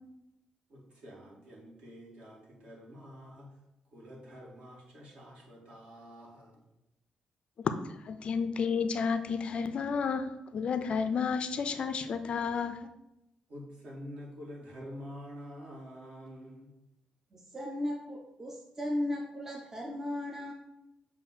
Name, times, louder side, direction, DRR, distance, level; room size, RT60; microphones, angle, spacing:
voice 1, 0.7-3.5 3.9-6.6 13.5-16.7, equal, 55° right, -3 dB, 1.9 m, -47 dB
voice 2, 8.1-12.9, left 6 dB, 45° left, 10 dB, 0.4 m, -31 dB
voice 3, 17.3-20.5, left 1 dB, 15° right, 0 dB, 0.6 m, -36 dB
7.1 x 2.5 x 5.7 m, 0.89 s
cardioid pair, 145°, 2 cm